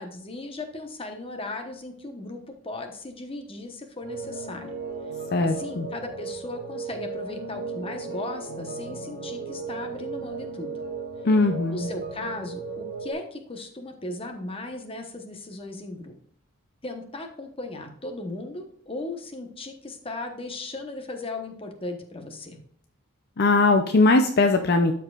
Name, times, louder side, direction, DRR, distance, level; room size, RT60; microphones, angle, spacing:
voice 1, 0.0-4.7 5.4-10.7 11.7-16.1 16.8-22.6, left 2 dB, 25° left, 5 dB, 1.0 m, -37 dB
sound 1, 4.0-13.1, right 4 dB, 50° right, 2.6 m, -36 dB
voice 2, 5.3-5.9 11.2-11.9 23.4-24.9, left 3 dB, 50° left, 6 dB, 0.5 m, -20 dB
13.0 x 4.7 x 2.4 m, 0.64 s
head